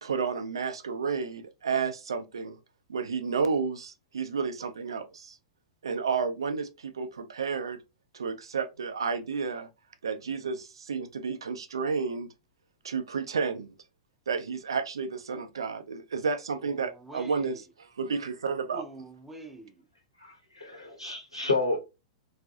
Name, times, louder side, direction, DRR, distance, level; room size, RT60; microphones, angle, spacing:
voice 1, 0.0-2.6 2.9-5.4 5.8-7.8 8.1-9.7 10.0-12.3 12.8-13.7 14.3-17.6 18.0-18.8, right 5 dB, 70° right, 0.4 m, -31 dB
voice 2, 16.6-17.6 18.7-19.8, right 2 dB, 5° right, 0.5 m, -45 dB
voice 3, 20.2-21.8, left 3 dB, 90° left, 1.1 m, -30 dB
2.5 x 2.4 x 2.3 m
figure-of-eight pair, 100°, 3 cm